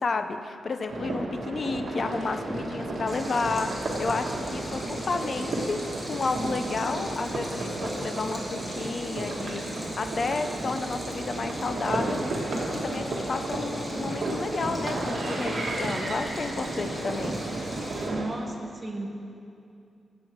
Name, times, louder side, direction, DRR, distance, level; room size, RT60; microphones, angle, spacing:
voice 1, 0.0-12.2 12.8-17.4, left 4 dB, 45° left, 8 dB, 0.6 m, -31 dB
sound 1, 0.9-18.2, right 2 dB, 60° right, 1.8 m, -32 dB
Stream, 3.1-18.1, equal, 5° right, 2.1 m, -41 dB
voice 2, 18.1-19.1, right 2 dB, 20° right, 1 dB, 1.3 m, -34 dB
16.0 x 7.6 x 4.6 m, 2.5 s
wide cardioid pair, 135°, 0 cm